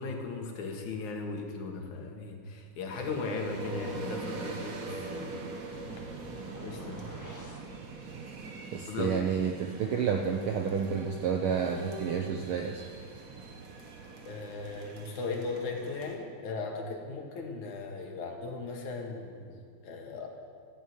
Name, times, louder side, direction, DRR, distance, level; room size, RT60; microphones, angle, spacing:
voice 1, 0.0-5.4 6.6-7.1 8.9-9.2 14.2-20.3, left 4 dB, 85° left, 2 dB, 3.2 m, -37 dB
sound 1, 2.9-16.2, right 2 dB, 45° right, 1.2 m, -42 dB
Boom, 5.7-8.8, right 6 dB, 60° right, 2.0 m, -48 dB
sound 2, 6.4-7.7, equal, 10° left, 1.1 m, -47 dB
voice 2, 8.7-12.9, right 7 dB, 75° right, 4 dB, 1.2 m, -30 dB
14.5 x 10.0 x 9.3 m, 2.1 s
omnidirectional pair, 3.3 m